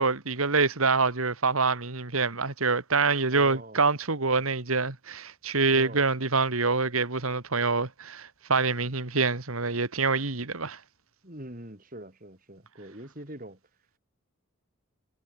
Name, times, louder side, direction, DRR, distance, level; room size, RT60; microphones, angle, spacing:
voice 1, 0.0-10.8, right 4 dB, 90° right, 2.2 m, -26 dB
voice 2, 3.3-3.8 5.7-6.0 11.2-13.6, right 1 dB, 40° right, 4.3 m, -43 dB
head